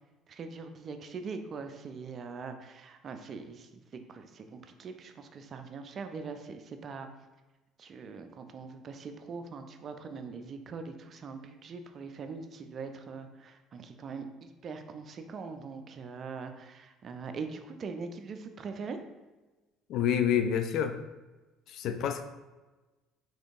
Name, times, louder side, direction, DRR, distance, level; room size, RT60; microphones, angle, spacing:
voice 1, 0.3-7.1 7.8-19.0, right 4 dB, 45° right, 7 dB, 0.4 m, -42 dB
voice 2, 19.9-21.0 21.7-22.2, left 8 dB, 55° left, 8 dB, 0.3 m, -28 dB
5.0 x 3.6 x 2.5 m, 1.2 s
figure-of-eight pair, 55°, 0 cm